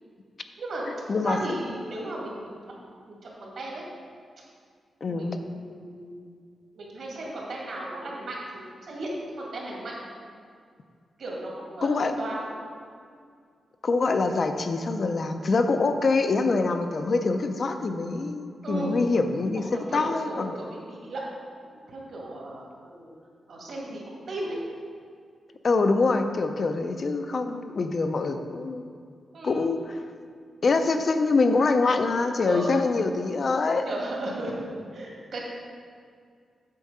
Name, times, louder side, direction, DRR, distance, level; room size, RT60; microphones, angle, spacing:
voice 1, 0.6-2.6 2.8-3.8 5.0-6.1 6.7-9.1 9.3-9.9 11.2-12.5 18.6-19.0 19.7-21.2 21.6-23.1 23.5-24.6 29.3-29.7 32.4-32.7 33.9-35.5, right 1 dB, 65° right, -3 dB, 2.2 m, -35 dB
voice 2, 1.1-1.4 5.0-5.4 11.8-12.1 13.8-20.5 25.6-28.9 29.4-30.0 30.6-33.9, left 3 dB, 40° left, 7 dB, 0.5 m, -25 dB
8.3 x 4.6 x 6.6 m, 2.2 s
wide cardioid pair, 150°, 0 cm